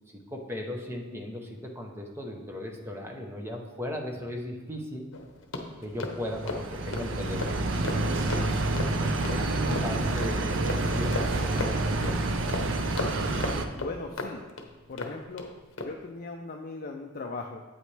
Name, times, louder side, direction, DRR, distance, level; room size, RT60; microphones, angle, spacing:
voice 1, 0.1-5.1 5.8-7.9 8.8-11.8, left 1 dB, 10° right, 1 dB, 0.8 m, -37 dB
sound 1, 5.1-15.5 15.8-16.0, left 3 dB, 60° left, 0.9 m, -37 dB
sound 2, 6.0-13.7, right 2 dB, 60° right, 0.6 m, -28 dB
voice 2, 13.8-14.4 14.9-15.5 15.8-17.6, left 3 dB, 40° left, 2 dB, 0.4 m, -38 dB
8.6 x 8.0 x 3.3 m, 1.2 s
head